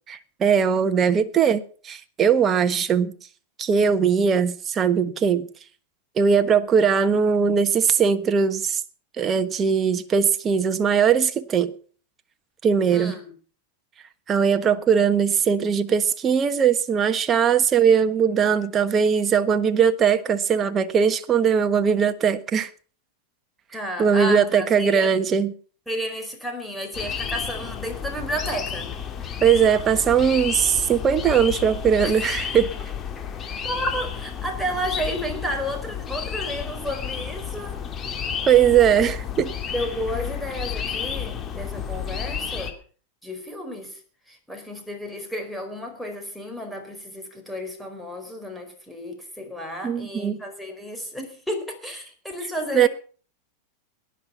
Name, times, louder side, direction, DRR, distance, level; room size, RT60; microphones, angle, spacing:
voice 1, 0.1-3.1 3.6-5.5 6.2-8.8 9.2-11.7 12.6-13.2 14.3-22.7 24.0-25.5 29.4-32.7 38.5-39.5 49.8-50.4 52.7-52.9, right 7 dB, 25° right, 1.3 m, -20 dB
voice 2, 12.9-13.3 23.7-25.2 25.9-28.9 32.0-32.2 33.6-37.8 38.9-39.0 39.7-42.8 43.2-44.0 44.3-52.9, equal, ahead, 4.6 m, -32 dB
sound 1, 26.9-42.7, left 7 dB, 25° left, 2.7 m, -31 dB
18.5 x 11.0 x 5.7 m
hypercardioid pair, 120°, 0 cm